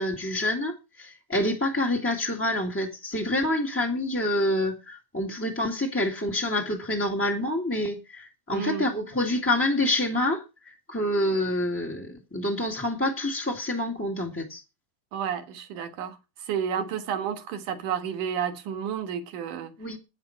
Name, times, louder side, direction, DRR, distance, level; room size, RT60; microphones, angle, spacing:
voice 1, 0.0-14.6 19.8-20.0, left 1 dB, 5° left, 1.3 m, -27 dB
voice 2, 8.5-8.9 15.1-19.7, right 8 dB, 65° right, 3.1 m, -31 dB
12.5 x 9.8 x 5.8 m
omnidirectional pair, 4.0 m